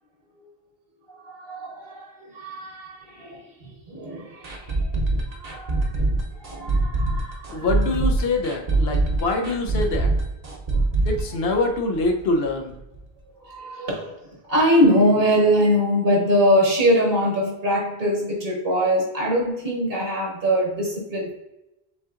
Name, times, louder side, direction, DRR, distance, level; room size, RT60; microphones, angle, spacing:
voice 1, 1.2-4.9 5.3-5.9 6.4-7.7 10.7-10.8 13.4-14.2 14.5-21.3, equal, 65° right, -2 dB, 1.3 m, -22 dB
sound 1, 4.4-12.2 12.4-12.5 12.9-13.0, right 2 dB, 45° right, 0.8 m, -23 dB
voice 2, 7.5-10.1 11.0-12.7, left 2 dB, 75° left, 2 dB, 1.0 m, -24 dB
7.5 x 2.8 x 2.5 m, 0.94 s
omnidirectional pair, 1.0 m